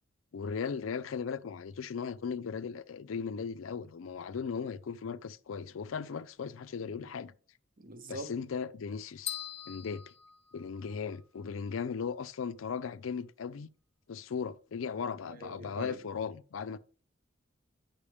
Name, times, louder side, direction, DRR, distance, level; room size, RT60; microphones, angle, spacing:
voice 1, 0.3-7.3 8.1-9.4 9.7-10.1 10.5-13.7 14.1-16.8, left 6 dB, 80° left, 0.4 m, -37 dB
voice 2, 7.8-8.3 15.3-16.0, right 1 dB, 45° right, 0.9 m, -43 dB
sound 1, 9.3-11.2, left 11 dB, 30° left, 0.7 m, -42 dB
8.5 x 5.8 x 3.3 m
head